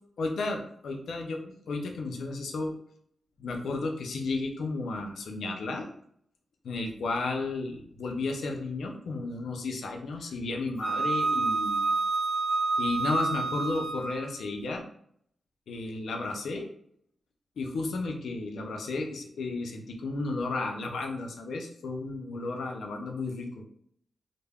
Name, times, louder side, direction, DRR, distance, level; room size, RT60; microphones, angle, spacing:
voice 1, 0.2-2.7 3.4-5.9 6.6-11.8 12.8-14.8 15.7-16.7 17.6-23.6, left 3 dB, 85° left, 3 dB, 0.4 m, -33 dB
Wind instrument woodwind instrument, 10.8-14.4, right 3 dB, 40° right, 0.4 m, -28 dB
3.3 x 2.0 x 2.2 m, 0.67 s
cardioid pair, 70°, 0 cm